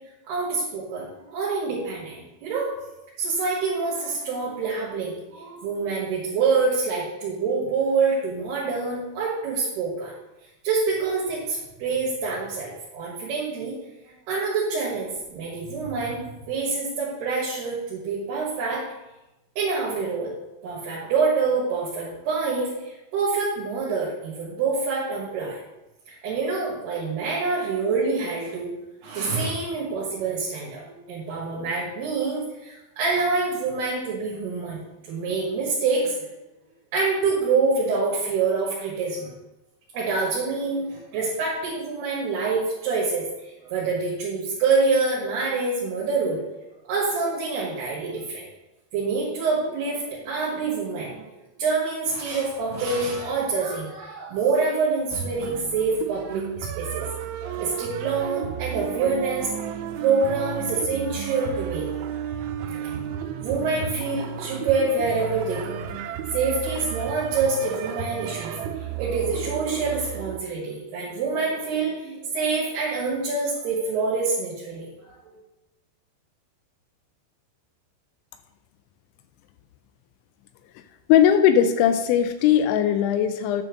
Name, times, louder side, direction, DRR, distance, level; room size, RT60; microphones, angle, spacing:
voice 1, 0.3-2.8 3.2-10.1 10.6-13.7 14.0-18.9 19.6-20.3 20.6-25.6 26.2-28.7 29.0-36.2 36.9-39.3 39.9-46.4 46.9-48.5 48.9-57.0 57.4-59.6 60.0-61.9 62.8-63.0 63.4-65.8 66.3-75.4, right 4 dB, 65° right, -5 dB, 3.3 m, -26 dB
sound 1, 55.1-70.4, right 9 dB, 90° right, 3.0 m, -33 dB
voice 2, 81.1-83.6, left 9 dB, 85° left, 9 dB, 2.8 m, -19 dB
9.7 x 4.4 x 6.3 m, 1.0 s
omnidirectional pair, 5.3 m